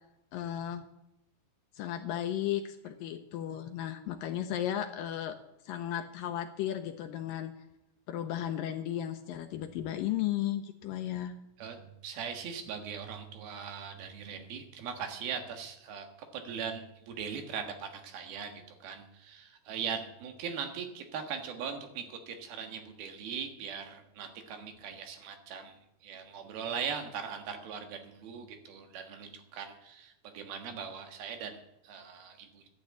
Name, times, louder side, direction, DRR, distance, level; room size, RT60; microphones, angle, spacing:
voice 1, 0.3-0.9 1.7-5.4 5.6-7.5 8.1-11.3, left 11 dB, 75° left, 7 dB, 2.1 m, -34 dB
voice 2, 11.6-16.1 16.3-32.7, right 7 dB, 70° right, 5 dB, 3.3 m, -40 dB
12.0 x 9.1 x 8.5 m, 0.88 s
omnidirectional pair, 4.6 m